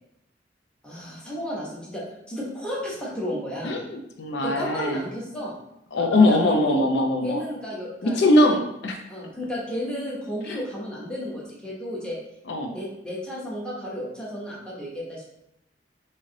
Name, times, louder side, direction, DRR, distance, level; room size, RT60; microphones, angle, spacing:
voice 1, 0.8-3.8 4.4-5.5 6.0-6.8 7.2-8.2 9.1-12.2 12.7-15.4, equal, 5° left, -6 dB, 1.0 m, -33 dB
voice 2, 3.6-5.0 5.9-7.4 8.0-9.0 10.5-10.6 12.5-12.7, left 1 dB, 70° left, 3 dB, 0.4 m, -21 dB
3.1 x 2.7 x 3.8 m, 0.83 s
head